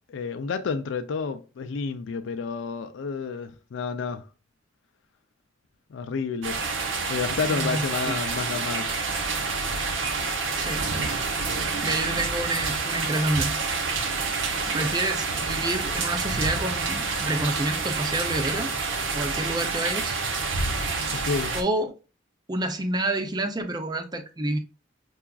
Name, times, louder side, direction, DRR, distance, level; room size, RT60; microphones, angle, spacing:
voice 1, 0.1-4.3 5.9-8.9 21.1-21.5, left 5 dB, 80° left, 0.4 m, -30 dB
sound 1, 6.4-21.6, right 4 dB, 85° right, 0.8 m, -28 dB
voice 2, 7.5-8.1 10.6-10.9 11.8-13.5 14.6-18.7 19.1-20.2 21.5-21.9 22.5-24.6, right 1 dB, 20° right, 0.5 m, -28 dB
5.7 x 2.4 x 2.3 m
head